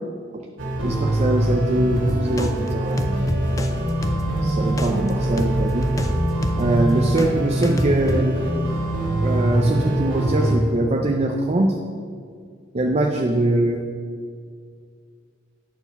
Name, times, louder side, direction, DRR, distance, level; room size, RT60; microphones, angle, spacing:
sound 1, 0.6-10.6, right 1 dB, 85° right, 1.6 m, -24 dB
voice 1, 0.8-3.5 4.4-5.9 6.6-8.4 9.2-11.8 12.7-13.9, right 1 dB, 35° right, 2 dB, 0.5 m, -22 dB
sound 2, 1.9-7.3 7.6-8.2, left 1 dB, 20° left, 0.5 m, -28 dB
9.0 x 4.6 x 6.9 m, 2.1 s
head